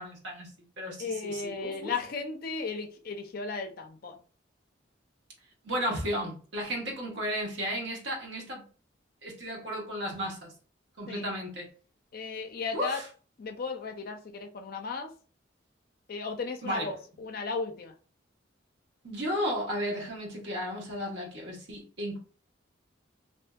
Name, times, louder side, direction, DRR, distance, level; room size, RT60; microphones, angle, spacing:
voice 1, 0.0-1.9 5.6-8.6 9.2-10.5 11.0-11.7 12.7-13.1 16.6-16.9 19.0-22.2, equal, 65° right, 1.0 m, -34 dB
voice 2, 1.0-4.1 11.1-11.2 12.1-13.0 13.4-15.1 16.1-17.9, left 4 dB, 50° left, 0.4 m, -35 dB
2.6 x 2.6 x 2.2 m
head